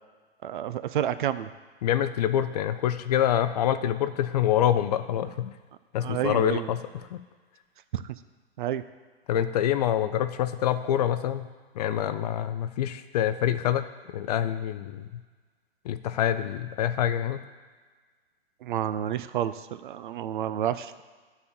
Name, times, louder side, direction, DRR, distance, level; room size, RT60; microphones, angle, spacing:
voice 1, 0.4-1.5 6.0-6.7 7.9-8.0 8.6-8.8 18.6-21.0, right 10 dB, 55° right, 13 dB, 0.5 m, -29 dB
voice 2, 1.8-5.6 5.9-7.2 9.3-11.5 11.8-13.8 14.1-15.2 15.8-17.4, left 10 dB, 40° left, 11 dB, 0.4 m, -26 dB
9.8 x 4.2 x 6.9 m, 1.5 s
hypercardioid pair, 130°, 31 cm